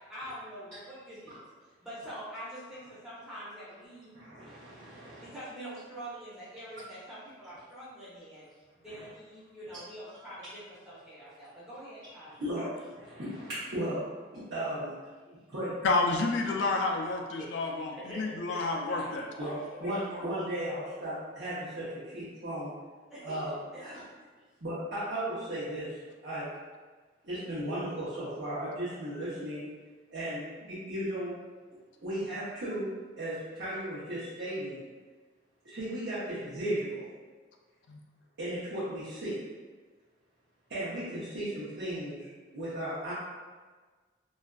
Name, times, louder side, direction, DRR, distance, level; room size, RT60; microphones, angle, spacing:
voice 1, 0.1-1.4 1.8-4.1 5.1-8.5 8.8-12.7 17.4-17.5 17.9-20.4 23.1-23.4 23.7-24.3, right 1 dB, 5° right, -11 dB, 0.6 m, -45 dB
voice 2, 4.1-5.3 8.9-9.1 12.4-12.6 12.9-14.0 14.5-14.9 15.5-15.7 19.4-19.5 19.8-22.7 23.2-23.9 24.6-25.9 26.2-26.5 27.2-29.6 30.1-31.3 32.0-32.9 33.2-34.8 35.6-37.1 38.4-39.4 40.7-42.3 42.5-43.1, right 1 dB, 70° right, -13 dB, 0.7 m, -35 dB
voice 3, 15.8-19.2 37.9-38.0, left 3 dB, 70° left, 2 dB, 0.3 m, -29 dB
2.4 x 2.3 x 2.2 m, 1.4 s
head